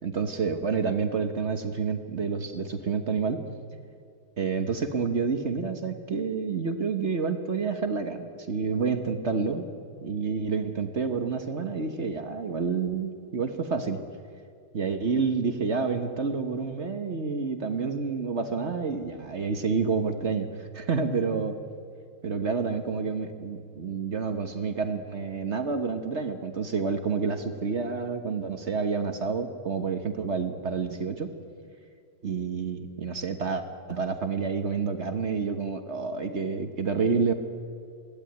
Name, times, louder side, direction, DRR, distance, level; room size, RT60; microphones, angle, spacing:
voice 1, 0.0-3.4 4.4-9.7 10.0-14.0 14.7-20.5 20.7-21.6 22.2-31.3 32.2-37.3, right 5 dB, 40° right, 7 dB, 1.2 m, -29 dB
21.5 x 16.0 x 9.3 m, 2.2 s
omnidirectional pair, 2.3 m